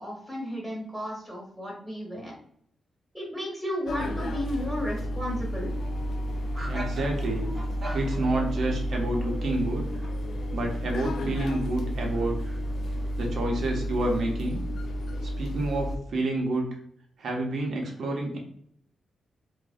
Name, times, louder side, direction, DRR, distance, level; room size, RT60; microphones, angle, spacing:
voice 1, 0.0-2.3 3.1-5.7, equal, ahead, -4 dB, 1.2 m, -33 dB
sound 1, 3.9-16.0, equal, 75° left, 0.3 m, -31 dB
sound 2, 5.3-13.5, right 1 dB, 25° right, 0.7 m, -45 dB
voice 2, 6.7-7.5 7.9-9.9 10.5-12.3 13.2-14.6 15.2-16.7 17.2-18.4, right 2 dB, 65° right, 0 dB, 0.6 m, -29 dB
2.5 x 2.0 x 2.4 m, 0.64 s
cardioid pair, 110°, 0 cm